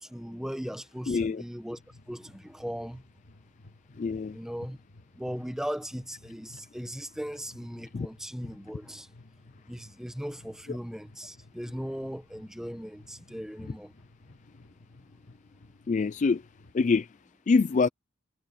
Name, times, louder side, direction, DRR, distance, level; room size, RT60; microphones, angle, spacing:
voice 1, 0.0-1.8 2.1-3.0 4.3-4.8 5.2-9.1 9.7-13.9, equal, ahead, 1.1 m, -38 dB
voice 2, 1.1-1.4 4.0-4.4 7.9-8.1 15.9-16.4 16.7-17.1 17.5-17.9, left 4 dB, 35° left, 0.3 m, -25 dB
sound 1, 1.7-16.8, left 2 dB, 55° left, 1.9 m, -56 dB
head